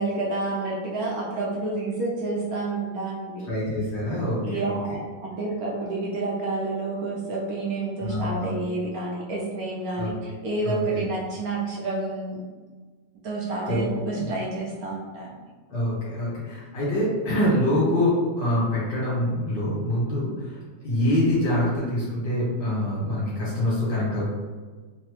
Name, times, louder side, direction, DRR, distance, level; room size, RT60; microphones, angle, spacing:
voice 1, 0.0-3.5 4.4-12.4 13.2-15.4, right 2 dB, 65° right, -4 dB, 1.0 m, -29 dB
voice 2, 3.5-5.0 8.0-8.5 9.9-10.1 10.6-11.1 13.7-13.9 14.1-14.3 15.7-20.6 20.8-24.3, left 1 dB, 90° left, -7 dB, 2.0 m, -25 dB
4.0 x 2.0 x 3.1 m, 1.4 s
omnidirectional pair, 1.9 m